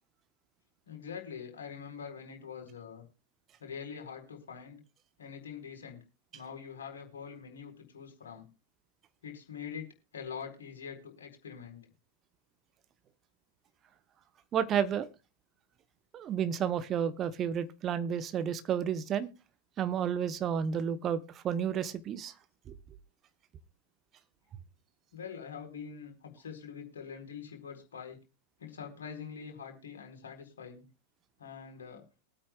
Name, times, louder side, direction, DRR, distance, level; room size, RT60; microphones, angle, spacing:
voice 1, 0.9-3.0 3.6-4.8 5.2-6.0 6.3-8.4 9.2-11.9 25.1-28.2 28.6-30.8 31.4-32.0, left 7 dB, 65° left, 2 dB, 4.4 m, -44 dB
voice 2, 14.5-15.1 16.1-19.3 19.8-22.3, right 8 dB, 30° right, 12 dB, 1.0 m, -31 dB
23.0 x 8.8 x 2.4 m, 0.29 s
figure-of-eight pair, 90°, 0 cm